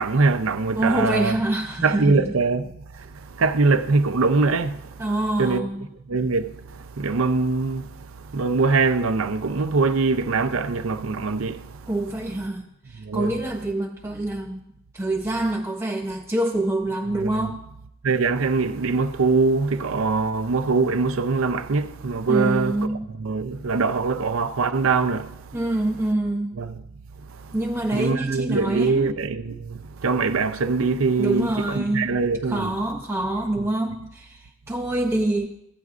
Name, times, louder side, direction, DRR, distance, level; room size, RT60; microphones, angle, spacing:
voice 1, 0.0-1.4 1.8-2.7 3.0-4.8 5.4-5.6 6.1-8.1 8.3-11.8 13.0-13.4 17.1-17.6 18.0-25.4 26.6-26.8 27.9-32.8 33.6-33.7, right 4 dB, 75° right, 0.6 m, -23 dB
voice 2, 0.8-2.3 5.0-5.9 11.9-14.6 14.9-17.6 22.3-23.1 25.5-26.5 27.5-29.1 31.2-32.1 32.5-35.5, right 1 dB, 10° right, 0.5 m, -26 dB
15.5 x 9.3 x 2.5 m
head